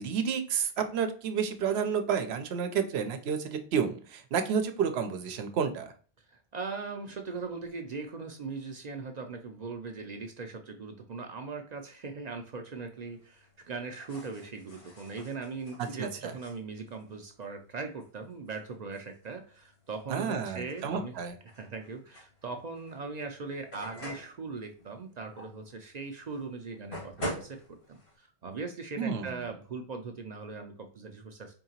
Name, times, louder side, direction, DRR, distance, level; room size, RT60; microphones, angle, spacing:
voice 1, 0.0-5.9 16.0-16.3 20.1-21.3 29.0-29.4, right 7 dB, 85° right, 7 dB, 0.9 m, -30 dB
voice 2, 6.3-21.2 21.5-27.6 27.9-31.5, right 4 dB, 55° right, 4 dB, 0.5 m, -40 dB
sound 1, 12.7-28.2, equal, 85° left, 1.9 m, -47 dB
4.5 x 2.8 x 2.7 m, 0.41 s
omnidirectional pair, 1.0 m